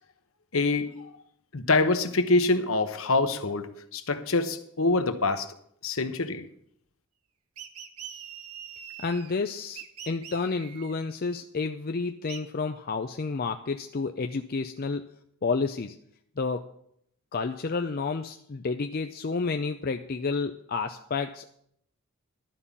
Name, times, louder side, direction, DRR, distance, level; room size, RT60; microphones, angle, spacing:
voice 1, 0.5-1.1 1.5-5.5 5.8-6.4, left 3 dB, 65° left, 9 dB, 1.0 m, -25 dB
sound 1, 7.6-9.4 9.8-10.9 12.3-12.4, right 9 dB, 80° right, 1.0 m, -43 dB
voice 2, 9.0-15.1 15.4-16.0 16.4-16.6 17.3-21.5, left 4 dB, 40° left, 6 dB, 0.5 m, -30 dB
12.0 x 5.6 x 8.4 m, 0.70 s
head